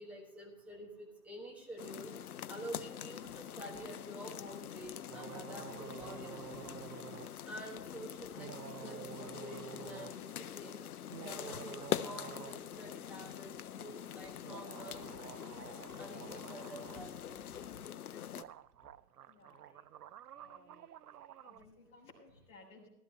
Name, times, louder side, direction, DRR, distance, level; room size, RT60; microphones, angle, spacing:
voice 1, 0.0-2.1 2.5-7.0 7.4-8.5 8.8-10.3 10.5-10.8 11.2-15.5 16.0-17.5, right 1 dB, 5° right, -1 dB, 1.3 m, -49 dB
sound 1, 1.8-18.4, left 10 dB, 65° left, 0.6 m, -44 dB
sound 2, 5.1-7.3 8.4-10.2 11.0-12.6 12.9-13.0 14.4-17.1 18.1-18.2 18.3-21.6, right 11 dB, 70° right, 0.6 m, -50 dB
voice 2, 19.3-19.8 20.3-20.9 21.4-22.9, left 3 dB, 10° left, -4 dB, 3.5 m, -59 dB
15.0 x 13.0 x 3.2 m, 0.87 s
hypercardioid pair, 145°, 49 cm